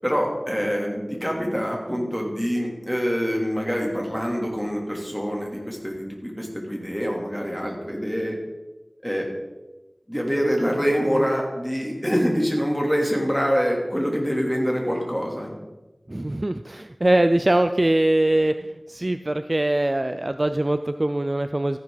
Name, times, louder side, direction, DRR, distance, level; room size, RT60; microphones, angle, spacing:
voice 1, 0.0-8.4 9.0-9.3 10.1-15.6, equal, ahead, -1 dB, 3.1 m, -25 dB
voice 2, 16.1-18.5 18.9-21.8, right 1 dB, 40° right, 9 dB, 0.5 m, -22 dB
14.0 x 10.5 x 4.0 m, 1.1 s
wide cardioid pair, 50°, 0 cm